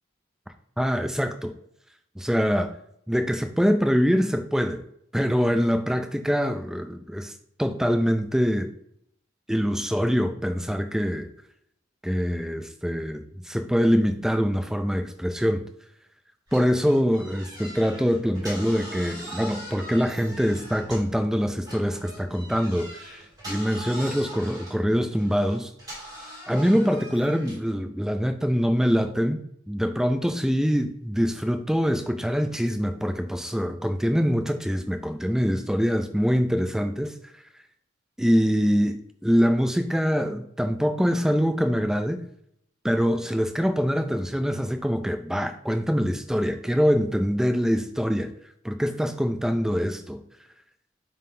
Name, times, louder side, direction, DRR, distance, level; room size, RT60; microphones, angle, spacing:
voice 1, 0.8-1.5 2.2-2.7 3.1-4.8 5.1-7.3 7.6-8.7 9.5-11.3 12.0-15.6 16.5-25.7 26.5-29.4 29.7-37.1 38.2-42.3 42.8-48.3 48.6-50.2, equal, ahead, 7 dB, 0.3 m, -24 dB
sound 1, 16.5-21.2 21.6-27.7, equal, 20° right, 2.5 m, -41 dB
9.3 x 3.7 x 2.7 m, 0.72 s
head